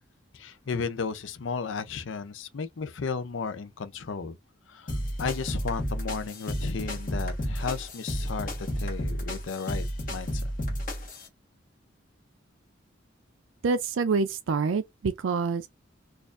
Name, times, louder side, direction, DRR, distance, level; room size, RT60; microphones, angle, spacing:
voice 1, 0.3-4.4 4.7-9.9 10.1-10.4, left 5 dB, 75° left, 0.5 m, -34 dB
sound 1, 4.9-11.3, equal, 45° left, 1.4 m, -32 dB
voice 2, 13.6-15.7, right 4 dB, 90° right, 0.4 m, -26 dB
4.2 x 2.4 x 2.5 m
head